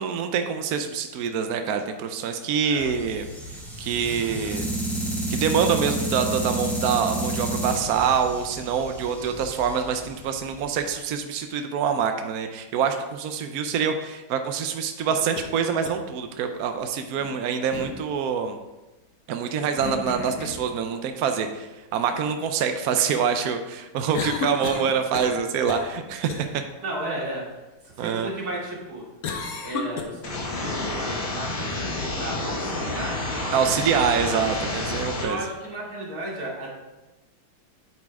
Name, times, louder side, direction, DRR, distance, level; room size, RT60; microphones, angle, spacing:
voice 1, 0.0-3.2 3.8-4.7 5.3-18.6 19.3-26.5 28.0-28.3 33.5-35.4, right 7 dB, 75° right, 6 dB, 0.8 m, -25 dB
sound 1, 2.8-10.9, right 2 dB, ahead, 2.8 m, -31 dB
sound 2, 15.0-15.5 15.9-16.0 17.7-18.0 19.8-20.7 24.1-25.4 25.7-25.9 26.3-26.4 29.2-30.0, left 5 dB, 55° left, 1.2 m, -32 dB
voice 2, 26.8-27.4 28.0-29.0 29.6-33.5 34.2-34.4 35.2-36.7, right 1 dB, 45° right, -4 dB, 2.9 m, -34 dB
sound 3, 30.2-35.2, left 2 dB, 70° left, 2.6 m, -29 dB
8.8 x 8.4 x 3.6 m, 1.1 s
omnidirectional pair, 2.3 m